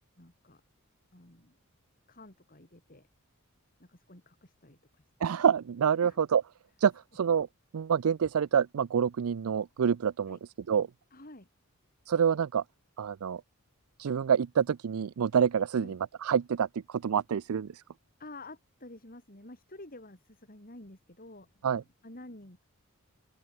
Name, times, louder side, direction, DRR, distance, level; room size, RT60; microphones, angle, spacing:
voice 1, 0.2-0.6 1.1-1.6 2.1-3.1 3.8-5.0 6.0-6.2 10.3-10.4 11.1-11.5 15.7-16.0 18.2-21.7 22.0-22.6, left 2 dB, 40° left, 3.8 m, -50 dB
voice 2, 5.2-6.4 6.8-7.5 7.7-10.4 10.7-10.9 12.1-12.6 13.0-13.4 14.0-17.8 21.6-21.8, right 7 dB, 75° right, 0.4 m, -27 dB
open air
head